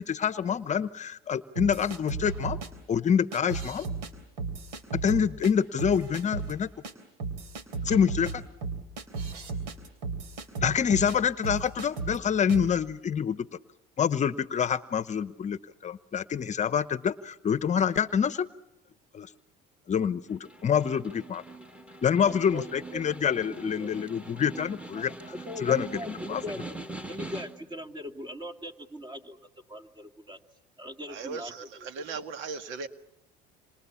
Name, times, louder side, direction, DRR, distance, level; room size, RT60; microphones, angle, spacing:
voice 1, 0.0-2.6 2.9-3.9 4.9-6.7 7.8-8.4 10.6-13.5 14.0-18.5 19.1-19.3 19.9-21.4 22.0-25.1 25.6-26.4, left 7 dB, 35° left, 0.9 m, -26 dB
sound 1, 1.6-2.7 3.3-4.1 4.4-5.5 5.8-6.5 6.8-6.9 7.2-11.2 11.4-12.2 12.5-12.7, right 4 dB, 90° right, 3.6 m, -34 dB
Snare drum, 20.3-27.8, right 2 dB, 5° right, 2.0 m, -43 dB
voice 2, 22.2-23.0 23.6-23.9 25.3-30.4 30.8-31.9, equal, 20° right, 2.7 m, -40 dB
voice 3, 31.1-32.9, right 5 dB, 70° right, 1.8 m, -37 dB
27.5 x 27.0 x 7.1 m
supercardioid pair, 95°, 20 cm